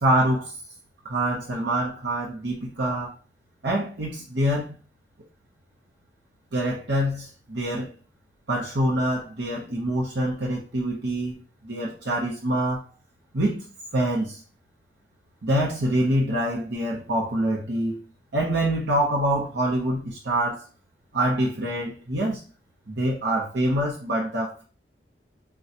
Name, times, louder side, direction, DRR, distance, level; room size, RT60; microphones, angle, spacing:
voice 1, 0.0-0.5 1.0-3.1 3.6-4.7 6.5-7.9 8.5-12.9 13.3-13.6 13.9-14.4 15.4-18.0 18.3-20.6 21.1-22.4 22.9-24.6, right 1 dB, 80° right, 0.9 m, -25 dB
5.8 x 2.3 x 2.9 m
head